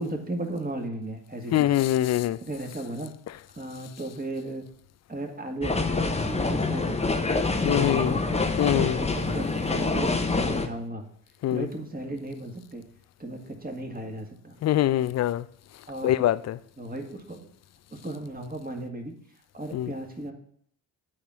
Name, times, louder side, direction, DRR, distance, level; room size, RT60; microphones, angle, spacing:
voice 1, 0.0-1.7 2.4-3.1 3.6-4.6 5.1-7.2 7.6-8.3 8.7-11.0 11.5-12.8 13.2-14.6 15.9-16.1 16.8-17.4 17.9-19.1 19.5-20.3, right 1 dB, 20° right, 2.0 m, -35 dB
voice 2, 1.5-2.4 7.6-8.2 8.6-9.0 11.4-11.7 14.6-15.4 16.0-16.6 19.7-19.9, left 13 dB, 35° left, 0.4 m, -23 dB
sound 1, 5.6-10.7, left 3 dB, 15° left, 0.9 m, -26 dB
8.6 x 4.3 x 7.3 m
hypercardioid pair, 45°, 48 cm